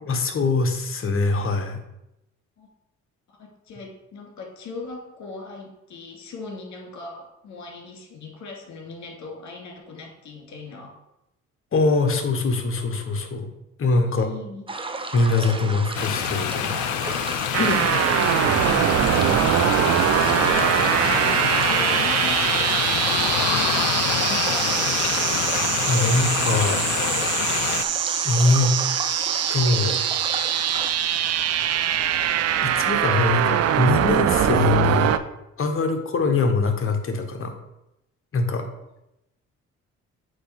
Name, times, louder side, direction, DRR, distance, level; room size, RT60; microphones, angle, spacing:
voice 1, 0.0-1.8 11.7-13.5 13.8-14.3 15.1-16.8 17.6-17.8 21.3-21.4 25.8-26.9 28.2-28.7 29.5-30.0 32.6-35.1 35.6-37.5 38.3-38.6, left 3 dB, 45° left, 5 dB, 1.2 m, -22 dB
voice 2, 3.3-10.9 13.9-14.6 15.3-15.6 17.5-17.9 19.9-25.1, left 3 dB, 65° left, 1 dB, 2.3 m, -40 dB
sound 1, 14.7-30.9, right 3 dB, 15° right, 0.7 m, -33 dB
sound 2, 15.9-27.8, left 12 dB, 85° left, 0.5 m, -27 dB
sound 3, 17.5-35.2, right 10 dB, 55° right, 0.5 m, -22 dB
7.9 x 3.0 x 5.8 m, 0.88 s
cardioid pair, 90°, 30 cm